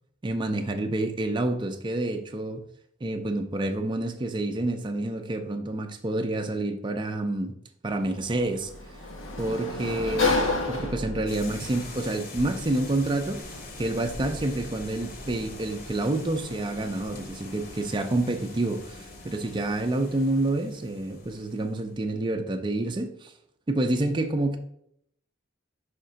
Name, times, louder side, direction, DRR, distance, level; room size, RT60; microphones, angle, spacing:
voice 1, 0.2-2.6 3.0-7.5 7.8-8.7 9.4-13.4 13.8-23.3 23.7-24.6, right 2 dB, 25° right, 4 dB, 0.4 m, -28 dB
Sliding door, 7.9-20.5, left 3 dB, 90° left, 1.0 m, -35 dB
sound 1, 11.3-22.0, left 2 dB, 50° left, 1.1 m, -43 dB
5.0 x 3.7 x 5.5 m, 0.73 s
head